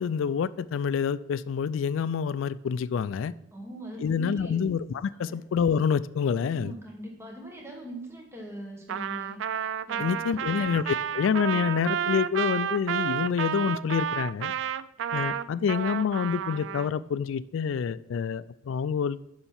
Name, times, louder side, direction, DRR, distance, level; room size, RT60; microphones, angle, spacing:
voice 1, 0.0-3.3 4.0-6.7 10.0-14.5 15.1-19.2, left 7 dB, 75° left, 17 dB, 0.3 m, -27 dB
voice 2, 3.5-4.6 5.3-5.4 6.3-9.4 9.9-10.4, right 1 dB, 15° right, 0 dB, 1.1 m, -42 dB
Trumpet, 8.9-16.9, right 8 dB, 70° right, 0.3 m, -31 dB
6.9 x 5.6 x 5.7 m, 0.84 s
head